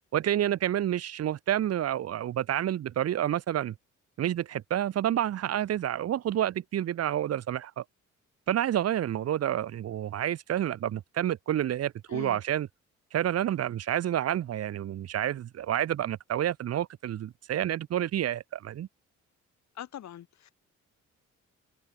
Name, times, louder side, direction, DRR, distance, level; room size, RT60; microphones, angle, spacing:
voice 1, 0.1-3.7 4.2-7.8 8.5-12.7 13.1-18.9, right 11 dB, 55° right, 0.8 m, -29 dB
voice 2, 12.1-12.4 19.7-20.5, left 11 dB, 65° left, 2.5 m, -42 dB
cardioid pair, 90°, 30 cm